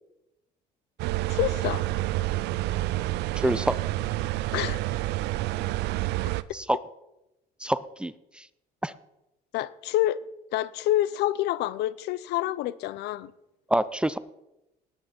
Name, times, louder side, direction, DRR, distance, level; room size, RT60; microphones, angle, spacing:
sound 1, 1.0-6.4, right 17 dB, 85° right, 0.5 m, -28 dB
voice 1, 1.3-1.8 4.5-4.8 9.5-10.2 10.5-13.3, left 14 dB, 85° left, 0.6 m, -27 dB
voice 2, 3.4-3.8 6.5-6.8 7.6-8.5 8.8-8.9 13.7-14.2, right 1 dB, 5° right, 0.5 m, -27 dB
19.0 x 9.0 x 4.3 m
cardioid pair, 110°, 17 cm